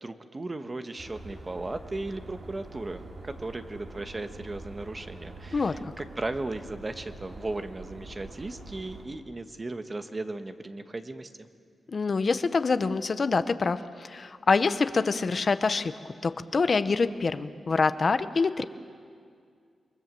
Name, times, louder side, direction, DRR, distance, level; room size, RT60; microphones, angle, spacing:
voice 1, 0.0-11.5, right 2 dB, 25° right, 8 dB, 1.2 m, -36 dB
sound 1, 1.0-9.1, right 2 dB, 65° right, 4.7 m, -45 dB
voice 2, 5.5-5.9 11.9-18.6, left 4 dB, 45° left, 11 dB, 0.8 m, -26 dB
27.5 x 23.5 x 7.6 m, 2.2 s
wide cardioid pair, 115°, 0 cm